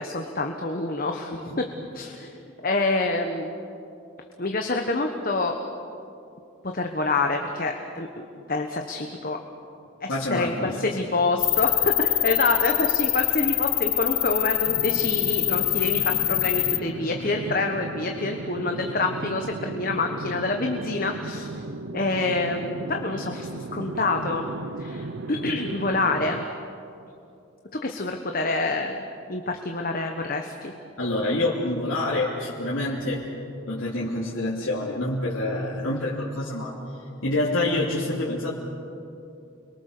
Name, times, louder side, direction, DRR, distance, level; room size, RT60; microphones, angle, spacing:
voice 1, 0.0-1.6 1.9-3.5 4.4-5.5 6.7-8.1 8.5-9.4 10.0-21.5 21.9-24.5 24.8-26.4 27.7-29.0 29.3-30.7, left 3 dB, 45° left, 3 dB, 1.3 m, -27 dB
voice 2, 10.1-10.9 31.0-33.3 33.7-36.8 37.2-38.5, left 2 dB, 85° left, -6 dB, 3.0 m, -27 dB
sound 1, 11.4-16.8, left 18 dB, 70° left, 0.7 m, -24 dB
sound 2, 14.7-26.5, right 2 dB, 70° right, 0.8 m, -35 dB
30.0 x 23.0 x 6.8 m, 2.7 s
head